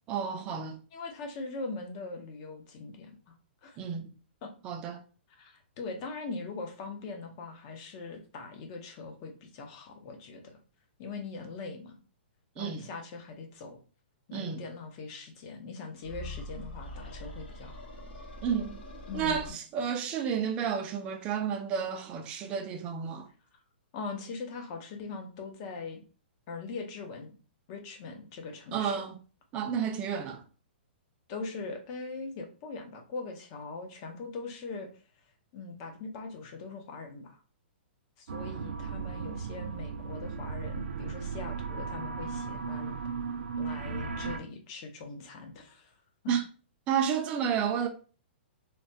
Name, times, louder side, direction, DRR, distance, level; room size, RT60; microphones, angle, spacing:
voice 1, 0.1-0.8 3.8-4.1 4.6-5.0 12.6-12.8 14.3-14.6 18.4-18.8 19.1-23.3 28.7-29.2 29.5-30.4 46.3-46.4 46.9-47.9, right 7 dB, 20° right, 0.3 m, -31 dB
voice 2, 0.9-3.3 3.6-3.8 4.4-4.5 5.4-10.6 11.0-12.0 12.6-13.8 14.3-17.8 19.1-19.5 23.9-26.0 26.5-27.3 27.7-29.0 31.3-34.9 35.5-37.4 38.2-43.0 43.6-46.0 46.2-46.3, left 3 dB, 30° left, 0.6 m, -41 dB
sound 1, 16.0-19.5, left 1 dB, 60° left, 1.2 m, -43 dB
sound 2, 38.3-44.4, right 5 dB, 85° right, 0.4 m, -36 dB
3.2 x 2.1 x 2.6 m
hypercardioid pair, 165°, 6 cm